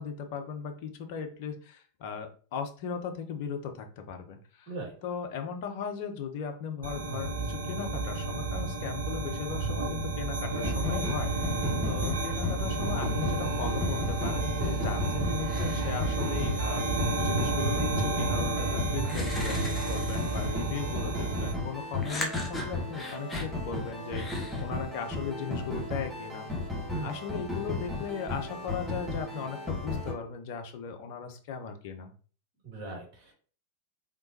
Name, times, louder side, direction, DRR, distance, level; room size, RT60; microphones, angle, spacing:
voice 1, 0.0-4.7 5.0-11.3 11.8-26.5 27.0-32.1, left 6 dB, 45° left, 5 dB, 0.7 m, -37 dB
sound 1, 6.8-21.5, right 3 dB, 70° right, 0.9 m, -31 dB
sound 2, 10.5-30.1, left 2 dB, ahead, 1.4 m, -35 dB
sound 3, 14.6-15.0 15.4-16.8 18.4-18.5 19.0-20.6 22.0-23.5 24.1-24.6, left 1 dB, 15° left, 0.8 m, -40 dB
voice 2, 18.9-19.3 26.9-27.2 32.6-33.3, right 4 dB, 45° right, -2 dB, 1.7 m, -38 dB
3.6 x 2.9 x 2.7 m, 0.41 s
figure-of-eight pair, 90°, 0 cm